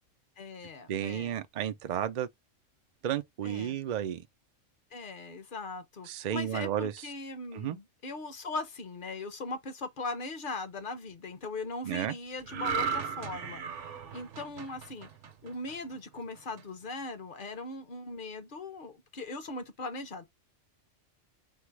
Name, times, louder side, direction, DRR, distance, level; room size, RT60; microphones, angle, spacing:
voice 1, 0.4-1.4 3.4-3.8 4.9-13.6 14.1-15.1 15.4-20.3, left 3 dB, 50° left, 0.8 m, -39 dB
voice 2, 0.9-2.3 3.0-4.2 6.1-7.1 7.5-7.8 11.8-12.1, right 10 dB, 85° right, 0.3 m, -32 dB
sound 1, 12.5-15.9 16.4-16.6, right 6 dB, 70° right, 1.0 m, -36 dB
4.6 x 2.0 x 4.6 m
omnidirectional pair, 1.3 m